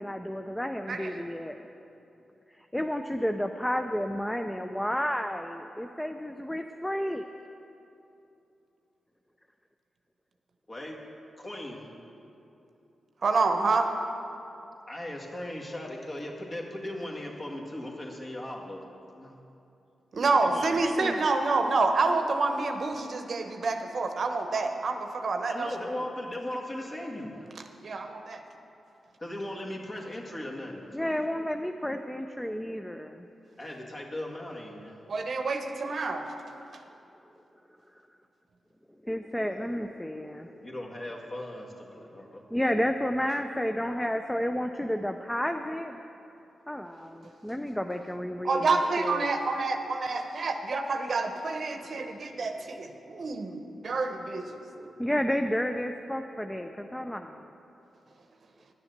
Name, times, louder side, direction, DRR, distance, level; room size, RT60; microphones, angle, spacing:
voice 1, 0.0-1.6 2.6-7.3 20.8-21.2 30.9-33.2 39.0-40.6 42.5-46.0 46.7-49.3 54.5-57.5, equal, 10° left, 6 dB, 0.5 m, -31 dB
voice 2, 10.7-11.0 11.4-11.9 14.9-19.3 20.3-20.7 25.4-27.5 29.2-31.1 33.6-35.0 40.6-42.4, left 1 dB, 40° left, -1 dB, 1.8 m, -38 dB
voice 3, 13.2-13.9 20.1-25.7 27.8-28.4 35.1-36.2 48.4-54.5, right 3 dB, 65° right, 6 dB, 0.8 m, -28 dB
9.8 x 7.1 x 6.6 m, 2.8 s
cardioid pair, 50°, 0 cm